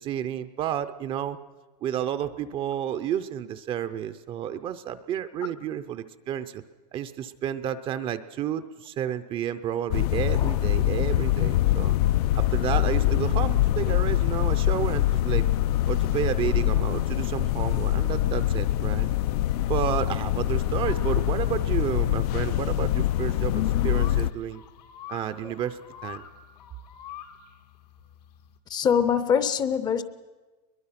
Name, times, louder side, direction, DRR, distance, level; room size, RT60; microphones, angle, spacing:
voice 1, 0.0-1.4 1.8-6.6 6.9-11.9 12.3-15.5 15.9-19.1 19.6-24.6 25.1-26.2, right 10 dB, 25° right, 0.6 m, -31 dB
sound 1, 9.9-24.3, left 13 dB, 75° left, 0.6 m, -24 dB
sound 2, 22.5-28.6, left 10 dB, 90° left, 2.0 m, -46 dB
voice 2, 28.7-30.0, left 7 dB, 20° left, 0.6 m, -24 dB
22.0 x 22.0 x 5.8 m
supercardioid pair, 165°, 20 cm